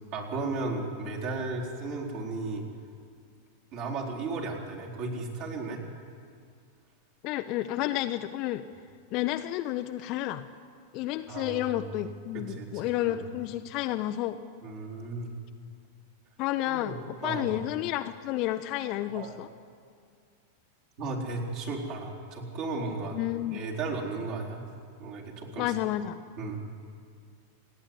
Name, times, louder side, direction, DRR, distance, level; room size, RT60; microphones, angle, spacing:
voice 1, 0.1-2.6 3.7-5.8 11.3-11.8 12.3-13.2 14.6-15.3 16.7-17.0 17.2-17.5 19.1-19.4 21.0-23.2 23.5-24.6 25.0-25.7 26.4-26.6, right 3 dB, 45° right, -2 dB, 4.2 m, -35 dB
voice 2, 7.2-8.6 9.1-10.4 10.9-14.4 16.4-16.9 17.2-19.5 23.1-23.6 25.6-26.2, left 14 dB, 40° left, 8 dB, 0.7 m, -31 dB
28.5 x 10.5 x 9.6 m, 2.2 s
figure-of-eight pair, 90°, 0 cm